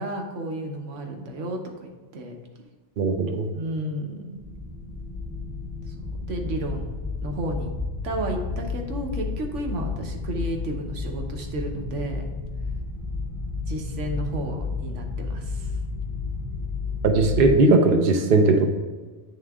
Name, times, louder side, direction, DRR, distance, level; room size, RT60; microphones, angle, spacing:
voice 1, 0.0-2.3 3.5-4.4 6.3-6.9 7.2-7.7 8.0-12.3 13.7-15.7, right 1 dB, 85° right, 3 dB, 1.2 m, -32 dB
voice 2, 3.0-3.5 17.0-18.7, right 3 dB, 55° right, 4 dB, 0.8 m, -18 dB
sound 1, 4.4-17.5, left 4 dB, 20° left, 0.7 m, -32 dB
8.8 x 3.7 x 3.5 m, 1.3 s
omnidirectional pair, 1.2 m